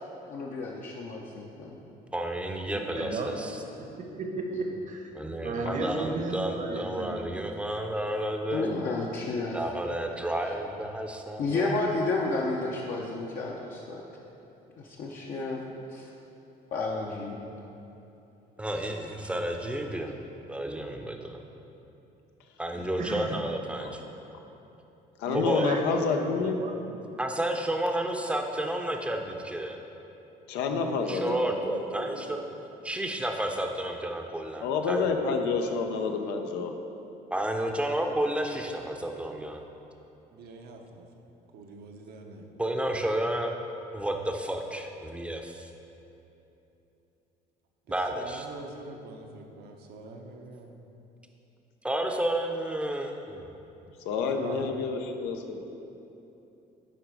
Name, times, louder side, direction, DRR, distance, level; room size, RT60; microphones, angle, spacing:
voice 1, 0.3-1.8 4.5-4.7 8.5-9.6 10.4-10.5 11.4-14.0 14.8-15.6 15.9-16.1 16.7-17.4, left 3 dB, 55° left, -3 dB, 0.7 m, -31 dB
voice 2, 2.1-3.6 5.1-8.7 9.5-11.8 18.6-20.1 20.5-21.4 22.6-24.0 25.3-25.7 27.2-29.8 31.1-32.4 32.8-35.2 37.3-39.6 42.6-43.5 43.9-45.7 47.9-48.4 51.8-53.5, right 1 dB, 5° right, 3 dB, 0.6 m, -31 dB
voice 3, 2.7-3.4 3.8-3.9 4.2-5.0 5.4-7.4 22.7-23.4 25.2-26.3 26.6-27.0, right 3 dB, 50° right, 3 dB, 1.0 m, -34 dB
voice 4, 23.8-24.1 25.2-26.6 30.5-31.4 34.6-36.7 54.0-55.6, left 5 dB, 90° left, 5 dB, 0.6 m, -29 dB
voice 5, 30.7-32.5 40.3-41.2 41.5-42.5 47.9-50.7 54.3-54.7, right 4 dB, 70° right, 2 dB, 0.9 m, -42 dB
10.0 x 3.7 x 4.7 m, 3.0 s
cardioid pair, 110°, 17 cm